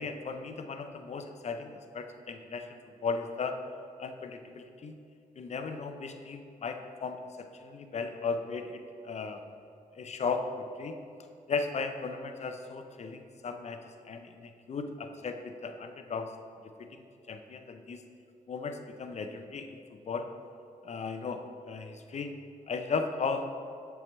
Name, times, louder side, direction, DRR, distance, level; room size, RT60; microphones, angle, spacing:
voice 1, 0.0-2.7 3.0-3.6 4.0-5.0 5.4-9.4 10.0-11.0 11.5-13.8 14.1-16.3 16.8-17.0 17.3-18.0 18.5-19.8 20.1-20.3 20.8-22.3 22.7-23.5, left 4 dB, 50° left, 7 dB, 0.5 m, -36 dB
6.9 x 4.6 x 3.1 m, 2.4 s
cardioid pair, 55°, 15 cm